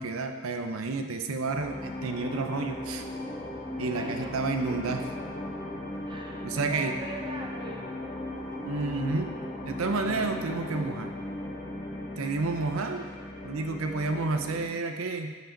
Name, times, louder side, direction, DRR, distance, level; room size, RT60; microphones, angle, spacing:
voice 1, 0.0-3.1 3.8-5.1 6.4-7.0 8.6-9.4 9.6-11.2 12.2-13.1 13.4-15.4, right 3 dB, 90° right, 6 dB, 0.6 m, -30 dB
sound 1, 1.5-14.8, left 1 dB, 40° left, 0.8 m, -37 dB
voice 2, 3.9-4.4 6.1-7.9, right 2 dB, 20° right, 1 dB, 0.7 m, -41 dB
9.6 x 5.1 x 3.9 m, 1.4 s
head